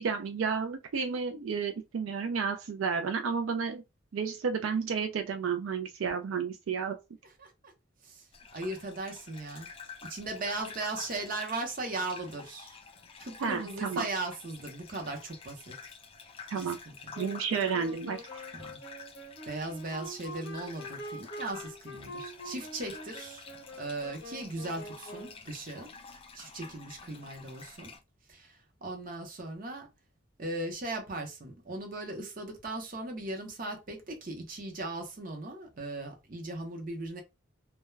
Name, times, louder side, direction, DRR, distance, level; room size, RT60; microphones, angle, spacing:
voice 1, 0.0-3.8 4.1-7.0 13.4-14.1 16.5-16.8 17.2-18.4, right 6 dB, 85° right, 0.4 m, -31 dB
Gurgling / Bathtub (filling or washing), 8.3-28.0, left 5 dB, 30° left, 0.4 m, -49 dB
voice 2, 8.5-9.7 10.0-12.8 13.2-15.9 16.5-16.9 18.5-18.8 19.5-23.5 23.8-25.9 26.3-27.9 28.3-29.9 30.4-37.2, right 2 dB, 45° right, 0.7 m, -38 dB
Wind instrument woodwind instrument, 17.1-25.5, equal, 65° left, 0.7 m, -45 dB
2.2 x 2.1 x 3.1 m
head